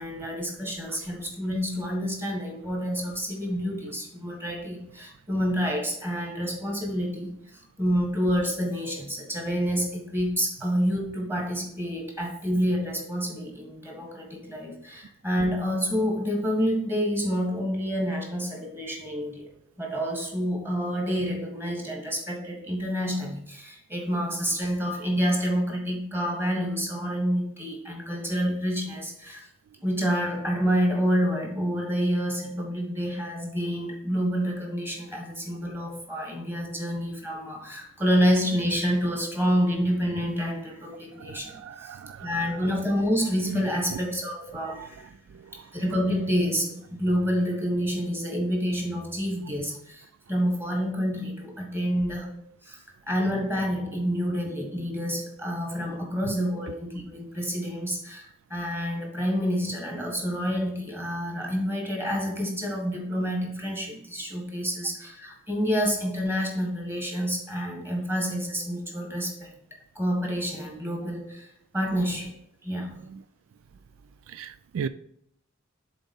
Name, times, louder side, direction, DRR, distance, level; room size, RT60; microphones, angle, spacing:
voice 1, 0.0-19.5 19.8-29.5 29.8-45.1 45.5-69.5 70.0-72.3 72.6-73.0, equal, 10° right, 0 dB, 1.8 m, -28 dB
voice 2, 41.2-42.3 43.9-44.0 44.7-44.9 45.3-45.6 73.1-73.2 74.3-74.9, right 7 dB, 80° right, 14 dB, 0.3 m, -37 dB
7.0 x 4.1 x 5.5 m, 0.70 s
head